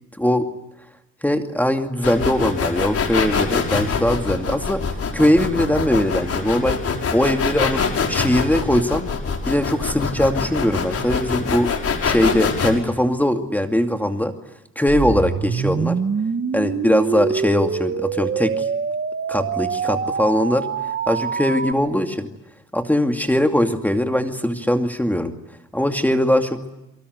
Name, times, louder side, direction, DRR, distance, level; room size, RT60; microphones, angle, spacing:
voice 1, 0.2-0.5 1.2-4.8 5.1-6.8 7.1-9.1 9.5-11.7 12.0-14.3 14.8-16.0 16.5-18.7 19.3-20.7 21.1-22.3 22.7-25.3 25.7-26.6, left 1 dB, 5° left, 6 dB, 2.5 m, -20 dB
sound 1, 2.0-12.7, left 5 dB, 50° left, 5.6 m, -24 dB
sound 2, 14.9-21.7, right 6 dB, 35° right, 1.3 m, -25 dB
29.0 x 24.0 x 8.1 m, 0.92 s
cardioid pair, 90°, 30 cm